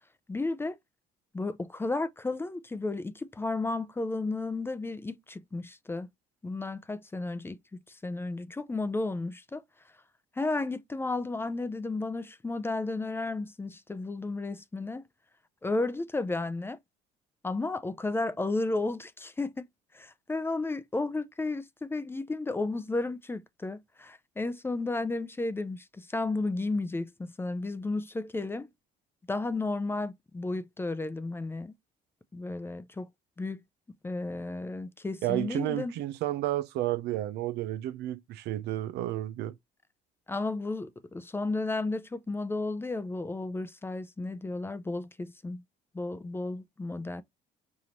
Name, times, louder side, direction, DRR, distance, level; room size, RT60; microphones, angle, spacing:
voice 1, 0.3-0.8 1.3-6.1 6.4-7.6 8.0-9.6 10.4-15.0 15.6-16.8 17.4-19.7 19.9-28.7 29.3-31.7 32.3-33.1 33.4-33.6 34.0-35.9 40.3-45.6 45.9-47.2, left 2 dB, 15° left, 0.4 m, -33 dB
voice 2, 35.2-39.5, right 14 dB, 80° right, 0.6 m, -31 dB
5.0 x 2.6 x 2.9 m
cardioid pair, 110°, 17 cm